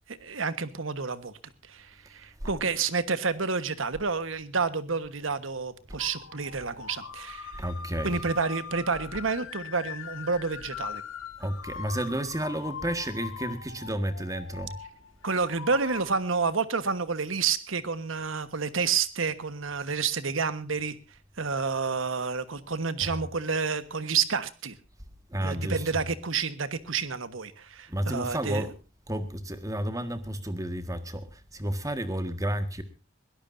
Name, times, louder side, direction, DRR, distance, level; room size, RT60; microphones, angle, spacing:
voice 1, 0.1-1.3 1.7-7.6 8.0-11.0 15.2-20.9 21.4-24.7 25.4-28.7, right 5 dB, 70° right, 13 dB, 1.3 m, -29 dB
sound 1, 6.0-16.1, left 6 dB, 80° left, 1.8 m, -41 dB
voice 2, 7.6-8.2 11.4-14.8 23.0-23.1 25.3-26.0 27.9-28.7 29.1-32.8, right 1 dB, 15° right, 9 dB, 1.7 m, -31 dB
22.0 x 17.0 x 2.7 m, 0.30 s
head